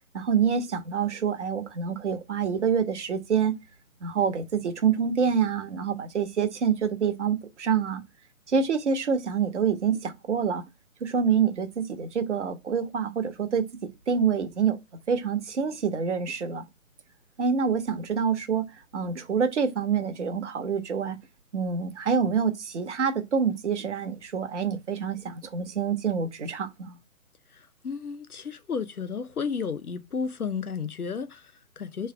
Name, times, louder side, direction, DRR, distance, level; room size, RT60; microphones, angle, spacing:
voice 1, 0.1-3.5 4.0-8.0 8.5-10.6 11.0-13.6 14.1-14.8 15.1-16.6 17.4-21.2 21.5-27.0, right 6 dB, 55° right, 0.9 m, -26 dB
voice 2, 27.5-32.1, left 5 dB, 85° left, 0.7 m, -33 dB
3.4 x 3.2 x 4.8 m
figure-of-eight pair, 135°, 43 cm